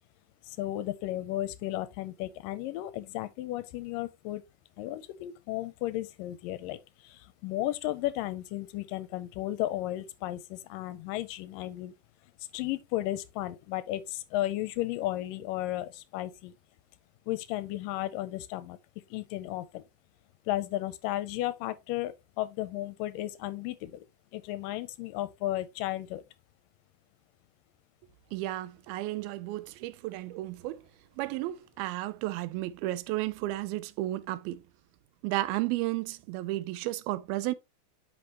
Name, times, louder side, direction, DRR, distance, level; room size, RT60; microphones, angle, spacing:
voice 1, 0.5-4.4 4.8-6.8 7.0-11.9 12.5-16.5 17.3-18.8 19.1-19.8 20.5-24.1 24.3-26.2, left 15 dB, 80° left, 2.1 m, -34 dB
voice 2, 28.3-30.8 31.2-34.6 35.2-37.5, right 17 dB, 90° right, 2.5 m, -33 dB
8.7 x 5.8 x 2.9 m
omnidirectional pair, 4.2 m